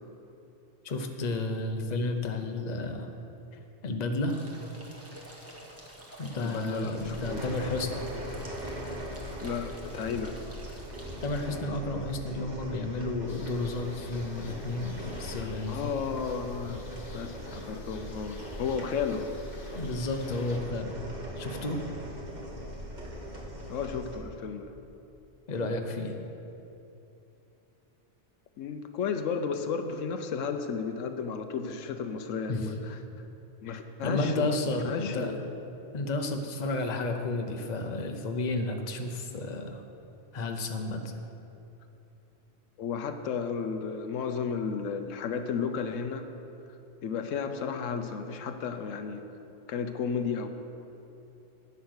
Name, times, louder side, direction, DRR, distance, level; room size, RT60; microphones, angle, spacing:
voice 1, 0.8-3.1 3.8-4.4 6.2-8.0 11.2-15.9 19.7-20.9 21.4-21.8 25.5-26.1 32.5-32.7 33.7-35.3 35.9-39.8 40.3-41.0, left 2 dB, 40° left, 4 dB, 0.9 m, -32 dB
sound 1, 4.3-11.5, right 1 dB, 10° right, 1.3 m, -48 dB
voice 2, 6.4-7.4 9.4-10.4 15.4-16.8 17.1-19.3 23.7-24.7 28.6-33.0 33.6-35.5 42.8-46.3 47.0-49.2 49.7-50.5, left 6 dB, 85° left, 8 dB, 1.1 m, -33 dB
sound 2, 7.0-24.2, equal, 35° right, 1.6 m, -40 dB
sound 3, 13.3-20.6, left 3 dB, 70° left, 1.3 m, -52 dB
10.0 x 8.8 x 6.3 m, 2.9 s
omnidirectional pair, 1.3 m